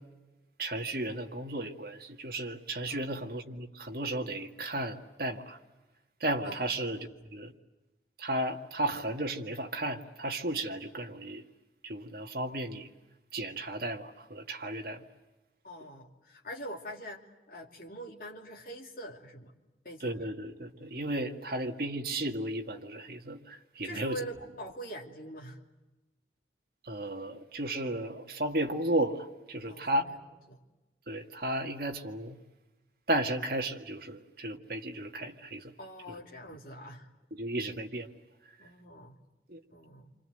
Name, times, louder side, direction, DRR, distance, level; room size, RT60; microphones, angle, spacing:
voice 1, 0.6-5.6 6.2-7.5 8.2-11.4 11.8-12.9 13.3-15.0 20.0-24.2 26.8-30.1 31.1-32.4 33.1-35.7 36.1-36.2 37.3-38.1 39.5-39.6, right 1 dB, 55° right, 3 dB, 2.0 m, -34 dB
voice 2, 15.6-19.5 19.8-20.2 23.8-25.6 29.6-30.6 35.8-37.1 38.6-39.2 39.7-40.1, equal, 50° left, 0 dB, 2.9 m, -44 dB
29.0 x 25.5 x 8.0 m, 1.1 s
head